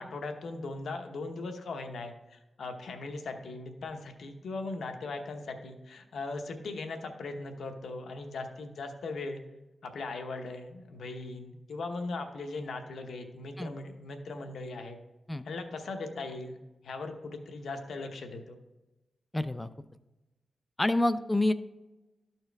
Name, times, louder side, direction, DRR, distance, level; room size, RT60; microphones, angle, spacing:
voice 1, 0.0-9.4 9.8-15.0 15.4-16.6 16.8-18.6, left 3 dB, 80° left, 5 dB, 0.9 m, -39 dB
voice 2, 19.3-19.7 20.8-21.5, left 1 dB, 15° left, 12 dB, 0.4 m, -27 dB
13.0 x 4.5 x 3.4 m, 1.0 s
cardioid pair, 80°, 0 cm